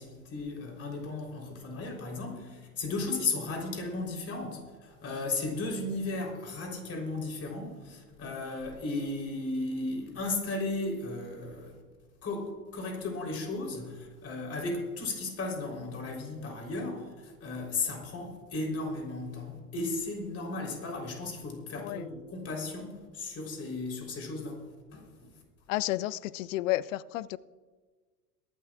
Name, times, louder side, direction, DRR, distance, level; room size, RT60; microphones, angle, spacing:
voice 1, 0.0-11.7 12.2-24.6 24.9-25.3, left 3 dB, 30° left, 3.7 m, -35 dB
voice 2, 25.7-27.4, left 16 dB, 55° left, 0.5 m, -31 dB
23.0 x 12.0 x 2.4 m
hypercardioid pair, 85°, 47 cm